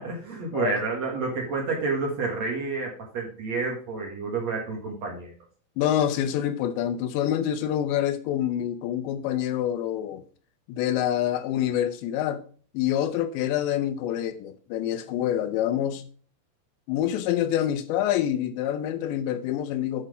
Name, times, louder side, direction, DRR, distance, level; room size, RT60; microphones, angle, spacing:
voice 1, 0.0-5.3, right 4 dB, 60° right, 0 dB, 1.9 m, -29 dB
voice 2, 5.8-10.2 10.7-12.4 12.7-16.0 16.9-20.0, left 11 dB, 80° left, 9 dB, 3.0 m, -26 dB
8.8 x 5.7 x 4.8 m, 0.43 s
omnidirectional pair, 5.2 m